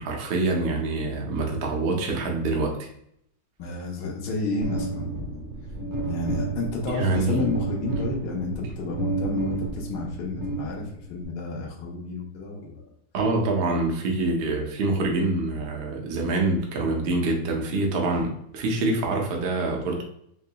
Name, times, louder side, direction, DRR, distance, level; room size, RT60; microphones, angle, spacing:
voice 1, 0.0-2.9 6.9-7.5 13.1-20.0, right 2 dB, 90° right, 1 dB, 0.5 m, -25 dB
voice 2, 3.6-5.4 6.0-12.8, left 2 dB, 65° left, -2 dB, 1.2 m, -31 dB
sound 1, 4.6-11.2, right 3 dB, 45° right, 1.0 m, -31 dB
4.7 x 2.8 x 2.2 m, 0.72 s
omnidirectional pair, 2.1 m